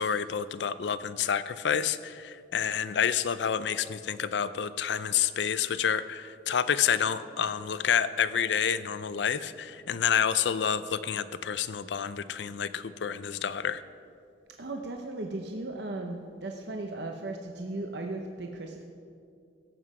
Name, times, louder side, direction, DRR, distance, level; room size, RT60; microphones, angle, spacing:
voice 1, 0.0-13.8, left 8 dB, 70° left, 13 dB, 0.4 m, -29 dB
voice 2, 14.6-18.9, right 2 dB, 65° right, 2 dB, 0.8 m, -36 dB
17.0 x 7.6 x 4.8 m, 2.4 s
head